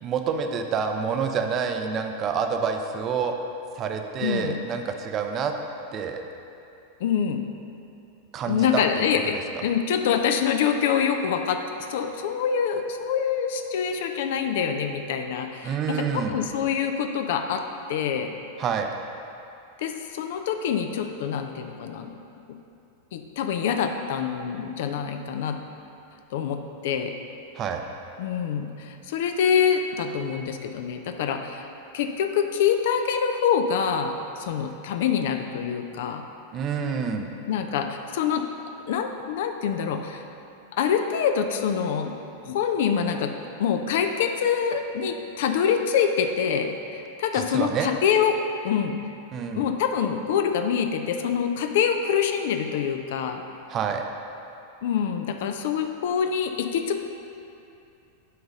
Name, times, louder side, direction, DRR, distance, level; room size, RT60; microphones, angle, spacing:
voice 1, 0.0-3.4 3.7-5.5 5.9-6.2 8.3-9.1 9.6-9.7 15.6-16.4 18.6-18.9 27.5-27.8 36.5-37.3 47.3-47.9 49.3-49.7 53.7-54.1, right 6 dB, 30° right, 5 dB, 0.5 m, -28 dB
voice 2, 4.2-4.6 7.0-7.4 8.5-11.6 11.9-17.6 17.9-18.4 19.8-22.2 23.1-25.6 26.3-27.1 28.2-31.7 31.9-36.2 37.5-38.4 38.9-40.2 40.8-42.1 42.4-43.3 43.6-48.4 48.6-49.0 49.5-53.4 54.8-57.0, left 7 dB, 55° left, 6 dB, 0.5 m, -25 dB
8.3 x 4.0 x 5.3 m, 2.6 s
figure-of-eight pair, 90°, 0 cm